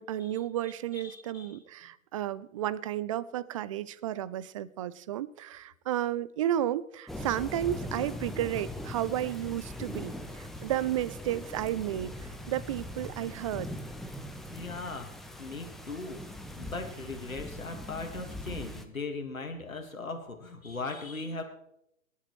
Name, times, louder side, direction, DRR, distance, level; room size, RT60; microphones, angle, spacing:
voice 1, 0.0-13.7, right 12 dB, 25° right, 18 dB, 0.4 m, -32 dB
voice 2, 0.9-1.6 14.5-16.2 16.6-21.4, left 3 dB, 90° left, 4 dB, 2.0 m, -39 dB
sound 1, 7.1-18.9, left 1 dB, ahead, 0.7 m, -41 dB
21.5 x 11.0 x 3.2 m, 0.79 s
figure-of-eight pair, 115°, 40 cm